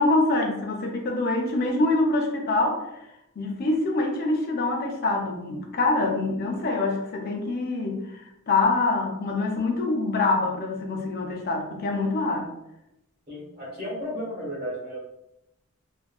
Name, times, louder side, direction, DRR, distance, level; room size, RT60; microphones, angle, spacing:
voice 1, 0.0-2.8 3.4-12.5, left 2 dB, 50° left, 1 dB, 0.5 m, -25 dB
voice 2, 13.3-15.0, equal, 50° right, -6 dB, 1.3 m, -33 dB
3.4 x 2.1 x 2.3 m, 0.87 s
head